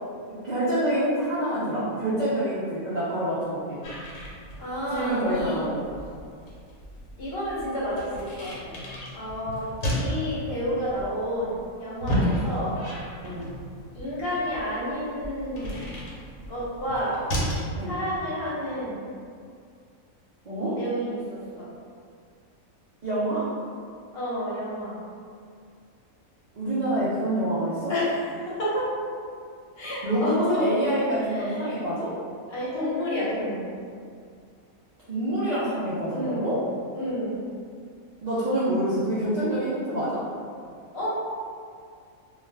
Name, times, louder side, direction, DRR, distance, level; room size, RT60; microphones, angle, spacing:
voice 1, 0.3-3.8 4.9-5.8 12.1-12.3 13.2-13.5 17.7-18.0 20.5-20.8 23.0-23.5 26.5-27.9 30.0-32.1 35.1-36.6 38.2-40.2, right 1 dB, 70° right, -10 dB, 0.4 m, -26 dB
sound 1, 3.8-17.7, equal, 75° left, 1.1 m, -33 dB
voice 2, 4.6-5.6 7.2-8.8 9.1-12.8 13.9-15.7 16.5-17.2 17.8-19.0 20.7-21.7 24.1-25.0 27.9-28.9 29.8-30.6 31.3-31.6 32.5-33.7 36.1-36.5 36.9-37.4 40.9-41.1, equal, 50° left, -9 dB, 0.9 m, -30 dB
2.4 x 2.2 x 3.2 m, 2.2 s
omnidirectional pair, 1.5 m